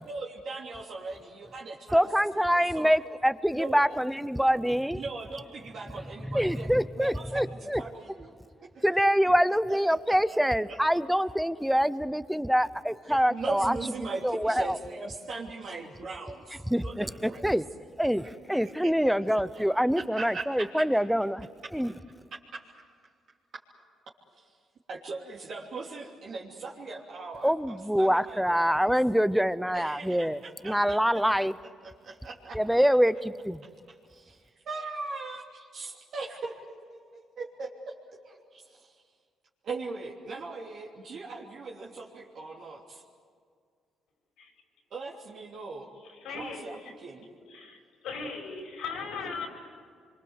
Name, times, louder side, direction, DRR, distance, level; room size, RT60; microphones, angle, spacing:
voice 1, 0.0-2.1 2.5-3.2 3.5-4.0 5.0-8.3 8.7-8.8 9.9-10.8 13.1-17.4 18.0-18.3 18.6-18.9 19.5-20.7 22.5-22.6 24.3-24.4 24.9-28.8 29.7-31.0 31.4-31.5 31.8-32.6 34.6-35.4 35.7-37.9 38.2-39.0 39.6-43.0 44.9-45.9 46.3-47.3, right 3 dB, 60° right, -3 dB, 3.1 m, -40 dB
voice 2, 1.9-5.0 6.3-7.8 8.8-13.8 14.2-14.8 16.7-17.6 18.0-21.5 21.7-21.9 27.4-31.6 32.5-33.6, equal, ahead, 15 dB, 0.8 m, -25 dB
voice 3, 46.0-46.9 47.4-49.5, left 5 dB, 85° left, 3 dB, 5.4 m, -38 dB
26.0 x 24.5 x 8.2 m, 2.1 s
cardioid pair, 90°, 0 cm